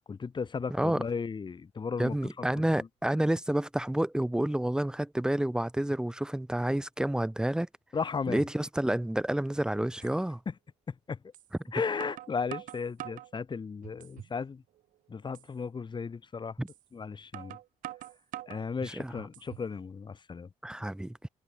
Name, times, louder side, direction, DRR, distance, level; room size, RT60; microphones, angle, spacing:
voice 1, 0.1-2.5 2.8-2.9 7.9-8.4 10.5-10.6 10.9-11.2 11.7-14.6 15.1-16.5 16.9-17.6 18.5-20.5, left 5 dB, 35° left, 0.8 m, -35 dB
voice 2, 0.7-1.0 2.0-7.7 8.3-10.4 16.6-16.7 18.8-19.2 20.6-21.2, right 1 dB, 5° right, 0.4 m, -29 dB
sound 1, 10.0-10.2 11.3-11.5 12.0-13.3 13.8-14.4 14.8-14.9 15.3-15.5 16.7-16.8 17.3-18.7 19.2-19.7, right 14 dB, 80° right, 0.7 m, -44 dB
supercardioid pair, 60°, 14 cm